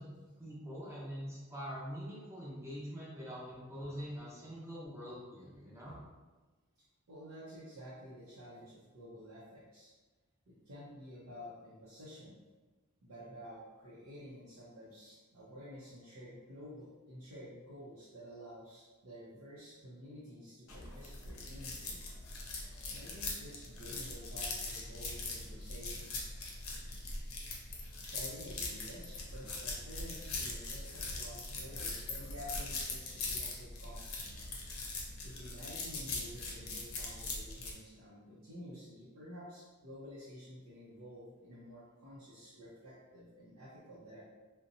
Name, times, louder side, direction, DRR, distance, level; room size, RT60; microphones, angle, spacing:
voice 1, 0.0-5.9, equal, 15° right, -8 dB, 0.7 m, -44 dB
voice 2, 7.1-9.9 10.5-12.3 13.0-22.0 22.9-26.1 28.0-34.6 35.2-44.3, equal, 85° right, -9 dB, 0.6 m, -51 dB
sound 1, 20.7-37.7, left 3 dB, 75° left, 0.5 m, -41 dB
2.7 x 2.1 x 2.5 m, 1.3 s
head